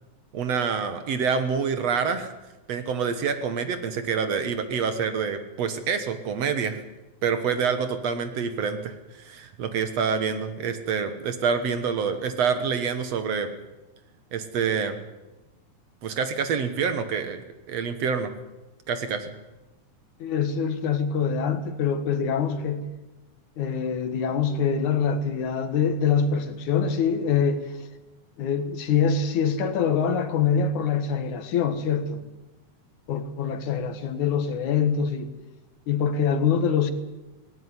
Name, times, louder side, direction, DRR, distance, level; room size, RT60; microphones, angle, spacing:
voice 1, 0.3-2.3 2.7-6.8 7.2-13.5 14.3-15.0 16.0-17.4 17.7-18.3 18.9-19.3, right 6 dB, 60° right, 2.2 m, -27 dB
voice 2, 20.2-22.9 23.6-27.9 28.4-32.2 33.1-35.3 35.9-36.9, left 6 dB, 70° left, 2.8 m, -24 dB
19.0 x 17.0 x 9.6 m
omnidirectional pair, 3.6 m